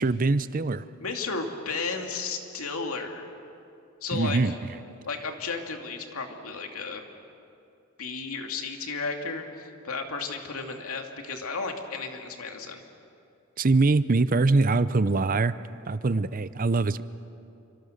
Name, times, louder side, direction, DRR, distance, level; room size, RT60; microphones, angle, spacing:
voice 1, 0.0-0.8 4.1-4.5 13.6-15.5 15.9-17.0, right 3 dB, 40° right, 14 dB, 0.6 m, -23 dB
voice 2, 1.0-3.3 4.0-4.5 5.0-7.0 8.0-12.8, left 4 dB, 85° left, 3 dB, 2.5 m, -33 dB
27.5 x 25.5 x 6.6 m, 2.7 s
head